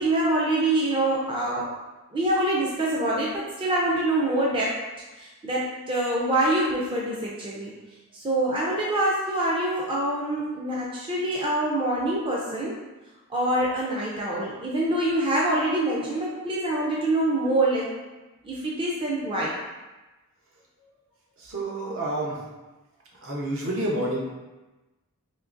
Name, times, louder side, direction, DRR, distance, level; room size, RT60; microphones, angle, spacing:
voice 1, 0.0-1.7 2.1-4.8 5.2-7.7 8.2-12.7 13.3-17.9 18.4-19.6, right 1 dB, 25° right, -4 dB, 0.4 m, -25 dB
voice 2, 21.4-22.4 23.2-24.2, right 1 dB, 60° right, -3 dB, 0.7 m, -29 dB
3.6 x 2.9 x 2.5 m, 1.1 s
head